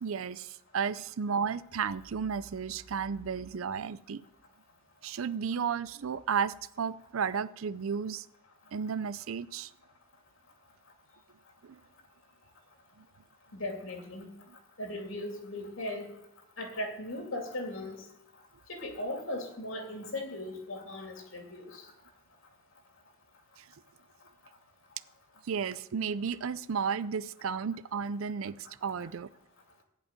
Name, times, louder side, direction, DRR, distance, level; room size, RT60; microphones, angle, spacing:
voice 1, 0.0-4.2 5.0-8.3 8.7-9.7 11.6-11.8 13.0-13.1 23.6-23.7 25.4-29.3, right 6 dB, 85° right, 16 dB, 0.5 m, -33 dB
voice 2, 13.5-14.3 14.8-16.1 16.6-18.0 18.7-21.8, left 1 dB, 85° left, 2 dB, 2.8 m, -38 dB
15.0 x 5.3 x 9.0 m, 0.81 s
head